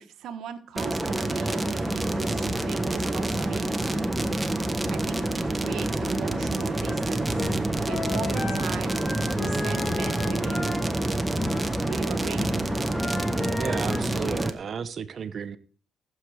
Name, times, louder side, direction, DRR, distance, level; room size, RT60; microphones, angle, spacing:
voice 1, 0.0-4.0 4.9-7.3 7.8-9.0 9.4-10.7 11.8-12.5, right 8 dB, 75° right, 1.3 m, -38 dB
sound 1, 0.8-14.5, right 1 dB, 10° right, 1.3 m, -27 dB
sound 2, 6.8-12.0 12.3-14.1, left 3 dB, 30° left, 2.2 m, -35 dB
voice 2, 13.6-15.6, right 6 dB, 50° right, 1.0 m, -33 dB
15.0 x 7.7 x 4.9 m
cardioid pair, 90°, 0 cm